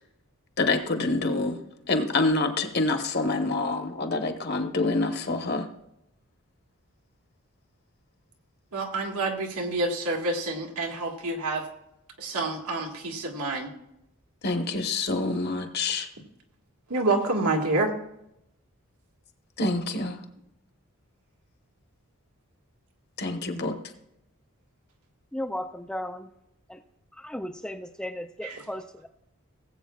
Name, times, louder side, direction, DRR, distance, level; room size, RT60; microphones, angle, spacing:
voice 1, 0.6-1.6 1.9-5.7 14.4-16.1 19.6-20.2 23.2-23.7, left 3 dB, 45° left, 5 dB, 1.1 m, -26 dB
voice 2, 8.7-11.7 12.2-13.7 16.9-17.9 23.6-23.7 28.4-28.6, right 2 dB, 85° right, 1 dB, 1.8 m, -28 dB
voice 3, 25.3-26.3 26.7-26.8 27.2-29.1, left 1 dB, 5° left, 6 dB, 0.3 m, -35 dB
18.5 x 8.2 x 2.4 m, 0.82 s
head